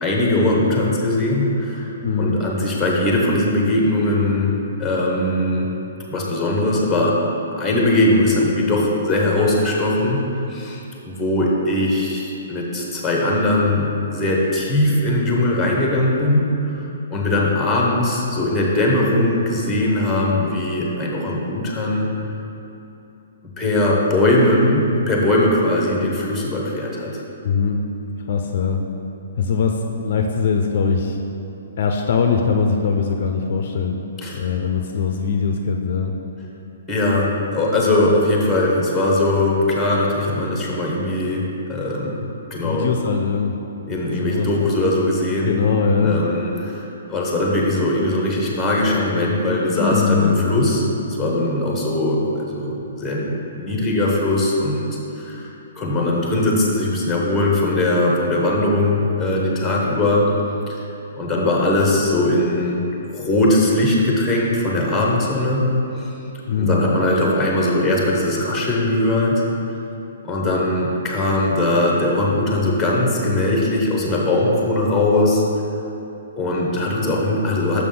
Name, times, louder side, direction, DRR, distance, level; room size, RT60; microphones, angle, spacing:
voice 1, 0.0-4.5 4.8-5.7 6.1-7.2 7.6-22.1 23.6-27.2 34.2-34.4 36.9-42.2 42.5-42.9 43.9-45.6 46.0-50.8 51.2-54.9 55.1-60.3 60.7-60.8 61.1-62.8 63.1-65.6 66.0-66.1 66.6-69.4 70.2-75.4 76.4-77.8, left 1 dB, 5° left, -2 dB, 0.8 m, -20 dB
voice 2, 2.0-2.4 27.4-27.8 28.3-28.8 29.4-29.7 30.0-31.2 31.8-34.0 34.4-36.1 42.6-43.5 43.9-44.7 45.5-46.2 49.8-50.7 66.5-66.8, left 5 dB, 50° left, 4 dB, 0.4 m, -21 dB
6.1 x 5.9 x 3.8 m, 2.9 s
hypercardioid pair, 170°, 0 cm